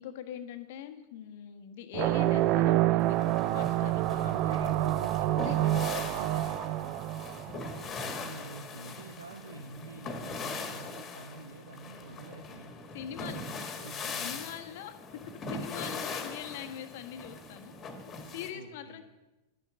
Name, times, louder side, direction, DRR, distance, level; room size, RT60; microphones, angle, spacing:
voice 1, 0.0-3.2 3.4-4.1 5.4-5.7 12.9-13.4 14.2-17.7 18.2-19.0, left 10 dB, 50° left, 6 dB, 1.3 m, -42 dB
sound 1, 1.9-8.1, right 15 dB, 40° right, 0.4 m, -28 dB
sound 2, 3.0-18.5, left 3 dB, 25° left, 1.8 m, -41 dB
voice 2, 3.5-6.9 8.0-12.7 13.2-14.4 18.5-19.0, right 3 dB, 75° right, 6 dB, 0.9 m, -47 dB
11.5 x 10.5 x 6.3 m, 1.0 s
figure-of-eight pair, 90°, 0 cm